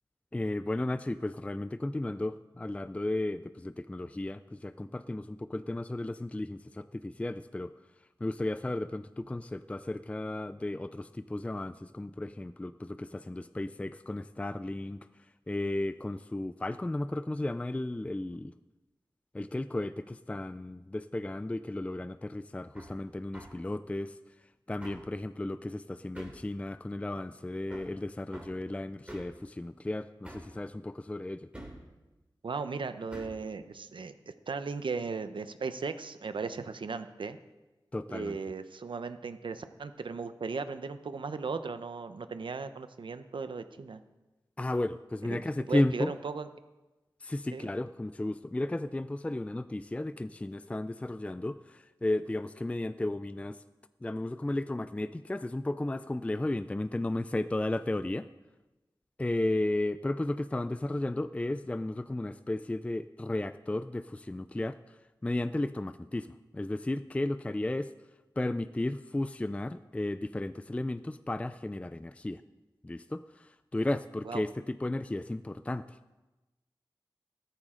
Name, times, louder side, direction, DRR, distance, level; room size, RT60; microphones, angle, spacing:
voice 1, 0.3-7.7 8.2-15.1 15.5-18.5 19.3-24.2 24.7-31.5 37.9-38.4 44.6-46.1 47.2-53.6 54.0-58.3 59.2-64.8 65.2-67.9 68.4-72.4 72.8-76.0, left 1 dB, 15° left, 12 dB, 0.3 m, -34 dB
Hammer, 22.8-22.9 23.3-23.6 24.8-25.1 26.2-26.5 27.7-28.0 28.3-28.6 29.1-29.4 30.2-30.6 31.5-31.9 33.1-33.4, right 1 dB, 15° right, 2.8 m, -46 dB
voice 2, 32.4-34.1 34.5-37.4 38.1-44.0 45.2-46.5 47.5-47.7 74.2-74.4, right 4 dB, 85° right, 10 dB, 0.7 m, -37 dB
15.0 x 13.5 x 3.8 m, 1.1 s
wide cardioid pair, 80°, 8 cm